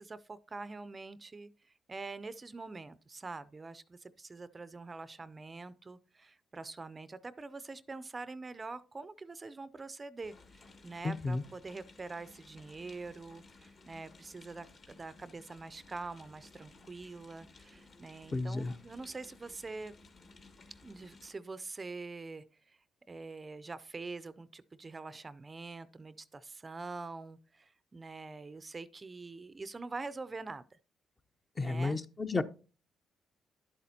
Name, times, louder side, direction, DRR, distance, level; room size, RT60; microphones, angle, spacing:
voice 1, 0.0-20.0 20.8-22.8 23.1-30.8 31.6-32.0, right 3 dB, 25° right, 0.4 m, -45 dB
sound 1, 10.2-21.3, left 3 dB, 50° left, 1.7 m, -58 dB
voice 2, 11.0-11.4 18.3-18.7 31.6-32.4, left 3 dB, 25° left, 0.6 m, -32 dB
11.0 x 8.4 x 2.8 m
cardioid pair, 90°, 0 cm